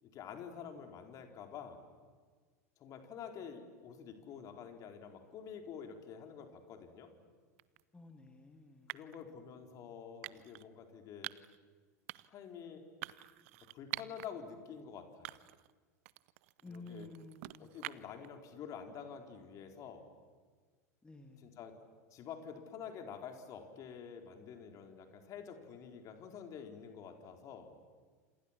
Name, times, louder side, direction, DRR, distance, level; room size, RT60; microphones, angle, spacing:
voice 1, 0.0-1.8 2.8-7.1 8.9-11.3 12.3-12.8 13.6-15.4 16.6-17.1 17.6-20.0 21.4-21.7 22.1-27.7, left 7 dB, 40° left, 5 dB, 4.1 m, -48 dB
sound 1, 7.6-7.8 8.9-9.2 10.2-10.7 11.2-11.6 12.1-12.4 13.0-14.3 14.7-14.8 15.2-15.7 16.1-18.3, right 20 dB, 60° right, 0.7 m, -46 dB
voice 2, 7.9-9.0 16.6-17.9 21.0-21.6, left 2 dB, 10° left, 5 dB, 2.3 m, -53 dB
29.0 x 27.5 x 7.4 m, 1.5 s
figure-of-eight pair, 85°, 9 cm